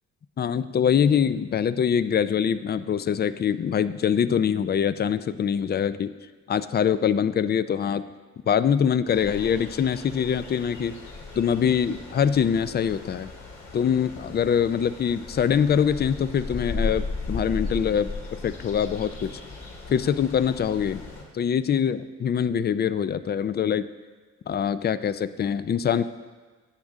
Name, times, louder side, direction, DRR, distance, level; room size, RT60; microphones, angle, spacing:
voice 1, 0.4-6.1 6.5-8.1 8.5-11.0 11.4-13.3 13.7-19.4 19.9-21.0 21.3-23.9 24.5-26.0, left 8 dB, 35° left, 14 dB, 0.4 m, -24 dB
sound 1, 9.1-21.2, left 3 dB, 60° left, 2.9 m, -36 dB
11.5 x 8.8 x 3.6 m, 1.4 s
cardioid pair, 90°, 30 cm